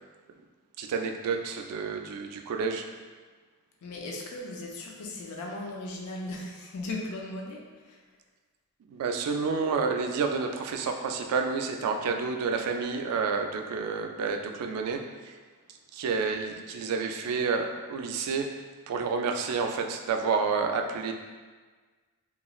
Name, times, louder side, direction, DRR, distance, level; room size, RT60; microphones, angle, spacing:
voice 1, 0.8-2.8 8.9-15.3 15.9-18.5 18.9-21.1, right 5 dB, 80° right, 4 dB, 0.3 m, -29 dB
voice 2, 3.8-8.0, left 2 dB, 75° left, -1 dB, 0.4 m, -37 dB
2.9 x 2.4 x 2.3 m, 1.4 s
head